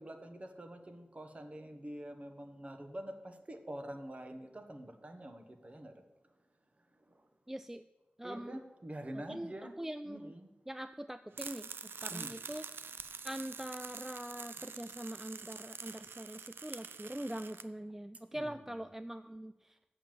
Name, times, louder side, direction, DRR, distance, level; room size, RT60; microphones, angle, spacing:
voice 1, 0.0-6.0 6.8-7.3 8.2-9.8 10.0-10.5 12.1-12.4 18.3-18.9, right 1 dB, 35° right, 6 dB, 1.2 m, -46 dB
voice 2, 7.5-7.8 8.2-8.6 9.3-9.5 9.8-10.3 10.7-11.7 12.0-12.6 13.2-19.7, right 1 dB, 10° right, 11 dB, 0.3 m, -43 dB
sound 1, 11.3-17.6, right 5 dB, 90° right, 0.5 m, -46 dB
7.3 x 6.9 x 7.6 m, 1.1 s
cardioid pair, 55°, 4 cm